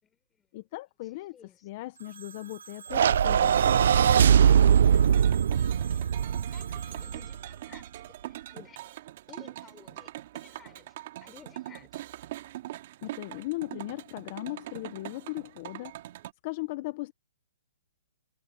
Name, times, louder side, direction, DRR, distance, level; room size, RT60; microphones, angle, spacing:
voice 1, 0.0-0.5 1.2-1.6 5.2-8.8 9.3-10.9 11.2-12.0, left 8 dB, 15° left, 6.5 m, -55 dB
voice 2, 0.5-4.9 13.0-15.9 16.4-17.1, left 19 dB, 35° left, 1.0 m, -38 dB
Telephone, 2.0-8.8, right 5 dB, 90° right, 6.5 m, -49 dB
sound 1, 2.9-7.3, right 8 dB, 60° right, 0.6 m, -21 dB
sound 2, 4.8-16.3, right 14 dB, 45° right, 2.7 m, -43 dB
hypercardioid pair, 150°, 0 cm